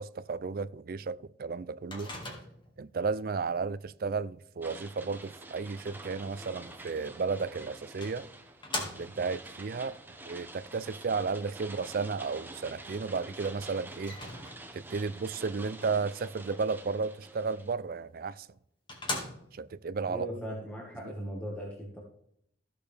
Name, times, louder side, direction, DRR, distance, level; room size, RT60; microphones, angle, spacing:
voice 1, 0.0-2.1 2.8-8.3 8.9-10.0 10.3-14.2 14.7-18.5 19.5-20.3, right 4 dB, 50° right, 0.4 m, -33 dB
Microwave oven, 1.9-2.8 7.2-7.3 8.0-9.4 14.0-14.9 18.0-18.1 18.5-18.6 18.9-19.8, left 2 dB, 25° left, 2.0 m, -39 dB
sound 1, 4.6-17.7, right 2 dB, 10° right, 0.9 m, -48 dB
voice 2, 20.1-22.0, right 1 dB, 10° left, 1.7 m, -38 dB
15.5 x 6.6 x 3.4 m
head